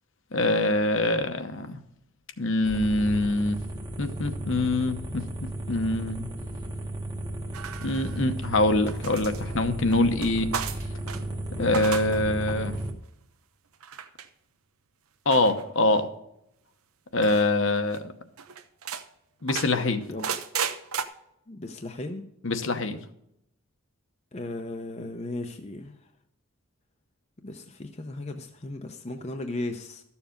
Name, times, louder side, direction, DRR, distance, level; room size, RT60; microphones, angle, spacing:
voice 1, 0.3-1.8 2.4-3.6 4.0-5.3 5.7-6.2 7.8-10.5 11.6-12.8 15.3-16.1 17.1-18.1 19.4-20.0 22.4-23.0, left 2 dB, 55° left, 8 dB, 0.9 m, -24 dB
sound 1, 2.6-12.9, right 1 dB, 20° right, 1.0 m, -34 dB
sound 2, 7.5-8.4 8.9-11.2 11.6-12.2 12.5-12.9 13.8-14.3 15.3-16.0 17.2-17.5 17.9-18.0 18.4-19.0 19.5-21.0, right 7 dB, 75° right, 0.8 m, -35 dB
voice 2, 21.5-22.2 24.3-25.9 27.4-30.0, left 2 dB, 30° left, 5 dB, 0.7 m, -36 dB
13.0 x 7.2 x 5.2 m, 0.80 s
head